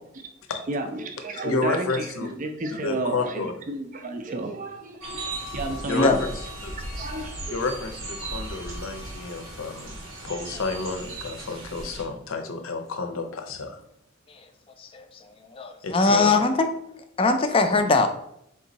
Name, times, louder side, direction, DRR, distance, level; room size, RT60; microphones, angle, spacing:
voice 1, 0.5-6.4 6.9-7.8, right 2 dB, 40° right, 6 dB, 0.4 m, -32 dB
voice 2, 1.3-2.3 2.7-3.5 5.9-6.7 7.5-13.8 15.8-16.4, left 3 dB, 80° left, 6 dB, 0.6 m, -31 dB
sound 1, 5.0-12.0, right 2 dB, 75° right, 0.9 m, -37 dB
voice 3, 15.5-16.5 17.2-18.1, left 3 dB, 25° left, 6 dB, 0.3 m, -21 dB
3.6 x 2.6 x 4.0 m, 0.75 s
head